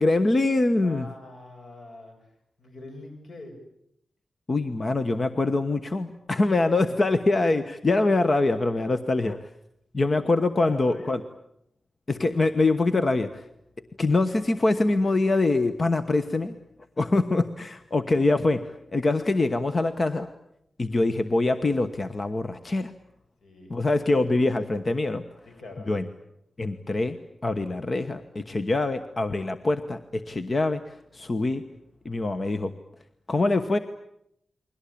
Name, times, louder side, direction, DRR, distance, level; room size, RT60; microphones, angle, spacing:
voice 1, 0.0-1.1 4.5-9.4 9.9-11.2 12.2-13.4 14.0-16.5 17.0-20.3 20.8-22.9 23.7-25.2 25.9-26.0 26.6-27.2 27.4-31.6 32.0-32.7 33.3-33.8, left 2 dB, 35° left, 9 dB, 1.2 m, -24 dB
voice 2, 0.8-2.3 2.6-3.6 10.6-11.2 12.1-12.2 20.9-21.1 23.4-23.7 25.4-26.0, left 2 dB, 75° left, 4 dB, 7.6 m, -44 dB
29.5 x 22.5 x 8.7 m, 0.75 s
wide cardioid pair, 140°, 0 cm